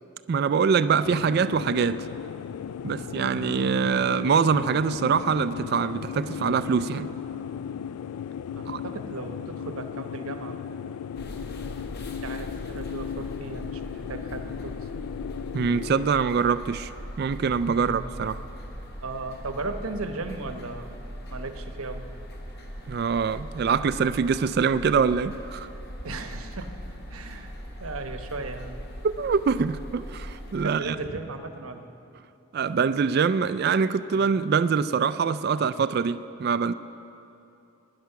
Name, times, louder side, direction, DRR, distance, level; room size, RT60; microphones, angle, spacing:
voice 1, 0.3-2.1 2.8-7.1 8.7-8.8 15.5-16.9 17.2-18.4 22.9-25.7 29.2-31.0 32.5-36.7, right 6 dB, 45° right, 12 dB, 0.3 m, -24 dB
sound 1, 1.0-16.1, left 8 dB, 85° left, 0.3 m, -36 dB
voice 2, 8.5-11.0 12.0-14.8 17.8-18.1 19.0-20.9 21.3-22.1 26.0-26.7 27.1-27.5 27.8-28.8 30.6-31.8 34.1-34.4, right 3 dB, 80° right, 6 dB, 1.0 m, -36 dB
sound 2, 11.1-30.7, equal, 50° left, 1.2 m, -40 dB
19.5 x 10.5 x 5.8 m, 2.8 s
head